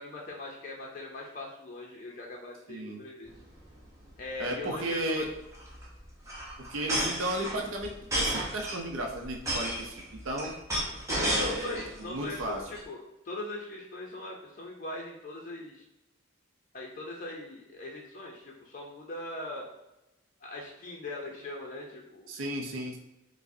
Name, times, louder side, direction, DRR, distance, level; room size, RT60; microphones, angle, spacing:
voice 1, 0.0-3.3 4.2-5.2 11.3-15.8 16.7-19.7 20.4-22.3, left 2 dB, 40° left, -2 dB, 0.5 m, -41 dB
voice 2, 2.7-3.0 4.4-5.3 6.7-9.9 10.2-10.5 11.1-12.6 22.3-23.0, right 1 dB, 90° right, 2 dB, 0.5 m, -34 dB
sound 1, 3.3-3.5 3.8-3.9 4.1-4.4 5.3-11.9 12.3-12.8, right 1 dB, 15° right, 0.8 m, -32 dB
4.7 x 2.0 x 2.6 m, 0.93 s
head